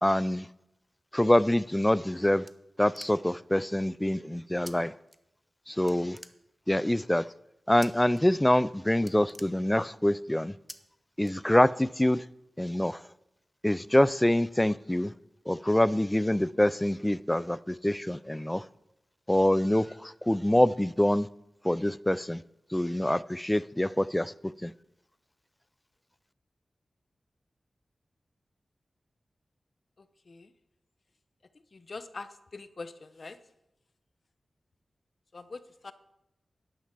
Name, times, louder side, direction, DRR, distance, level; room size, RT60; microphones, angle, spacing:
voice 1, 0.0-0.5 1.1-2.4 2.8-4.9 5.7-6.2 6.7-7.3 7.7-10.5 11.2-12.2 12.6-13.0 13.6-15.1 15.5-18.6 19.3-21.3 21.6-22.4 22.7-24.3 24.6-24.7, left 1 dB, 15° left, 0.5 m, -25 dB
sound 1, 2.5-3.5 4.7-4.8 5.1-5.6 5.9-6.8 7.8-8.2 8.5-8.7 9.0-10.1 10.7-10.8 11.2-11.9, right 1 dB, 10° right, 1.1 m, -48 dB
voice 2, 31.7-33.4 35.3-35.9, left 3 dB, 60° left, 0.9 m, -43 dB
11.5 x 10.5 x 6.0 m
cardioid pair, 50°, 0 cm